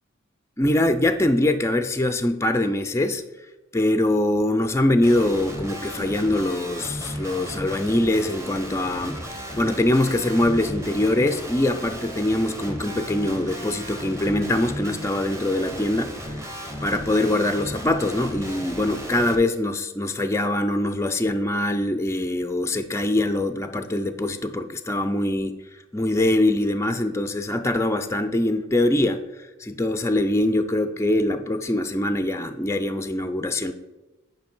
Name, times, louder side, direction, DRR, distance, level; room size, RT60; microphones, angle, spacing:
voice 1, 0.6-3.2 3.7-9.2 9.6-16.6 16.8-25.6 25.9-29.2 29.6-33.7, left 1 dB, 15° left, 9 dB, 0.4 m, -23 dB
Guitar, 5.0-19.4, equal, 15° right, 0.9 m, -35 dB
9.6 x 5.4 x 4.4 m, 1.1 s
head